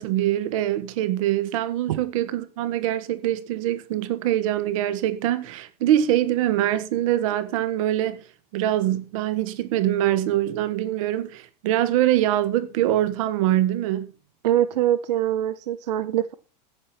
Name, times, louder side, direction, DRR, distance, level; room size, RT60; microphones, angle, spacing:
voice 1, 0.0-8.2 8.5-14.1, right 13 dB, 55° right, 1.6 m, -23 dB
voice 2, 14.4-16.3, right 12 dB, 80° right, 1.2 m, -23 dB
14.5 x 9.3 x 4.4 m
supercardioid pair, 165°, 21 cm